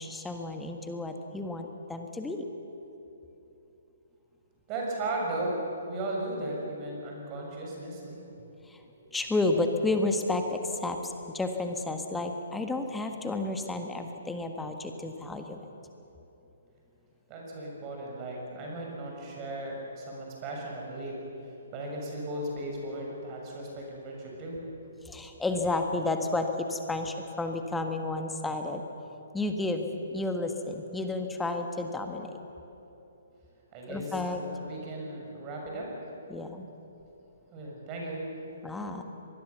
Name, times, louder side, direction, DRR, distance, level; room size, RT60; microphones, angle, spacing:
voice 1, 0.0-2.4 9.1-15.6 25.1-28.8 29.3-32.3 33.9-34.4 36.3-36.7 38.6-39.0, left 2 dB, 5° left, 5 dB, 1.6 m, -31 dB
voice 2, 4.7-5.6 5.9-8.2 17.3-21.2 21.7-24.6 33.7-35.9 37.5-38.2, right 1 dB, 25° right, -1 dB, 6.8 m, -36 dB
24.5 x 20.5 x 7.1 m, 3.0 s
figure-of-eight pair, 125°, 0 cm